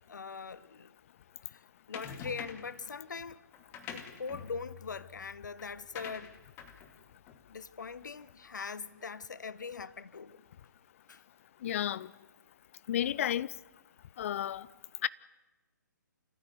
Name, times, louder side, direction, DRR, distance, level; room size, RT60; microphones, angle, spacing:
voice 1, 0.1-0.9 1.5-1.6 1.9-3.4 3.9-6.3 7.5-10.4 11.1-11.2, left 5 dB, 70° left, 1.2 m, -42 dB
sound 1, 1.9-2.8 3.5-8.2, left 7 dB, 20° left, 2.1 m, -47 dB
voice 2, 11.6-12.1 12.9-13.5 14.2-14.7 15.0-15.1, left 11 dB, 45° left, 0.8 m, -31 dB
28.0 x 14.5 x 9.6 m
figure-of-eight pair, 135°, 10 cm